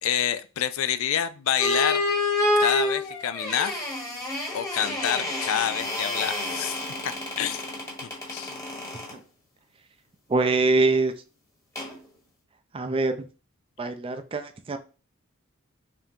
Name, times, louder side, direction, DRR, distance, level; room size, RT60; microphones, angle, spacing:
voice 1, 0.0-2.0 2.6-3.8 4.5-7.6 8.0-8.5, left 9 dB, 85° left, 13 dB, 0.4 m, -28 dB
sound 1, 1.6-9.2 11.8-12.0, left 2 dB, 15° left, 1.1 m, -28 dB
voice 2, 10.3-11.1 12.7-13.1 13.8-14.8, right 3 dB, 25° right, 8 dB, 0.4 m, -23 dB
3.6 x 3.5 x 2.7 m, 0.35 s
head